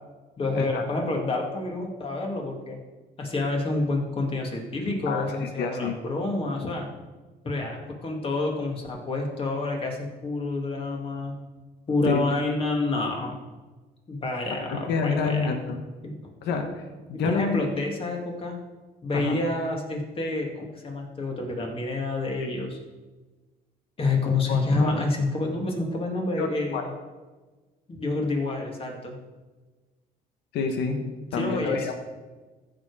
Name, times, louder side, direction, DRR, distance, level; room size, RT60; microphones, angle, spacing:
voice 1, 0.4-2.8 3.2-6.9 7.4-11.4 11.9-13.4 14.1-15.5 16.0-16.1 17.1-18.6 19.0-22.8 24.0-26.9 27.9-29.2 31.3-31.8, left 2 dB, 35° left, 1 dB, 2.2 m, -28 dB
voice 2, 5.1-5.9 12.1-12.2 14.5-14.6 14.9-15.8 16.4-16.7 17.1-17.6 19.1-19.4 24.5-24.9 26.4-26.9 30.5-31.0 31.3-32.1, left 5 dB, 80° left, 5 dB, 1.3 m, -28 dB
14.5 x 5.2 x 4.8 m, 1.3 s
cardioid pair, 110°, 17 cm